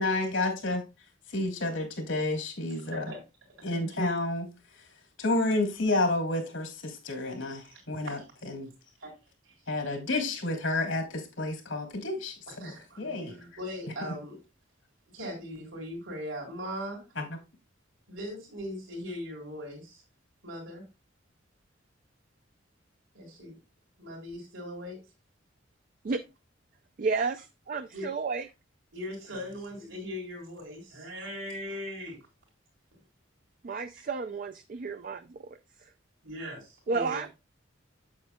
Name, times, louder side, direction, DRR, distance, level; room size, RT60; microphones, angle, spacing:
voice 1, 0.0-3.0 3.6-8.2 8.4-8.7 9.7-12.7 13.0-13.4 14.0-14.1 17.1-17.4, left 2 dB, 85° left, 2.8 m, -30 dB
voice 2, 12.5-14.4 15.1-17.0 18.1-20.0 20.4-20.8 23.1-23.6 24.0-25.0 27.9-28.1 28.9-32.2 36.2-37.2, equal, 85° right, 3.9 m, -39 dB
voice 3, 27.0-28.5 33.6-35.9 36.9-37.3, right 4 dB, 45° right, 0.4 m, -32 dB
8.6 x 8.3 x 2.2 m
head